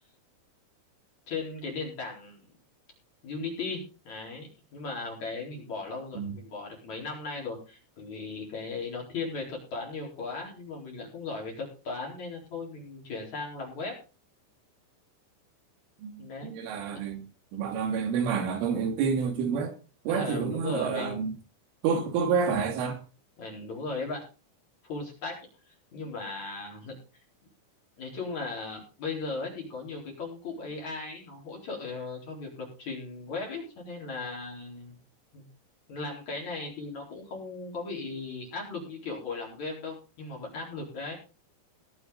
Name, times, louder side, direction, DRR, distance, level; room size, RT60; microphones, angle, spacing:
voice 1, 1.3-2.5 3.2-14.0 16.2-16.5 20.1-21.3 23.4-24.2 24.8-25.4 25.7-27.0 28.0-35.0 35.3-35.5 35.9-41.2, left 3 dB, 40° left, 5.1 m, -37 dB
voice 2, 16.0-17.2 17.5-19.7 20.1-21.3 21.8-23.0, right 6 dB, 85° right, 4.7 m, -28 dB
19.0 x 8.1 x 3.9 m
omnidirectional pair, 5.5 m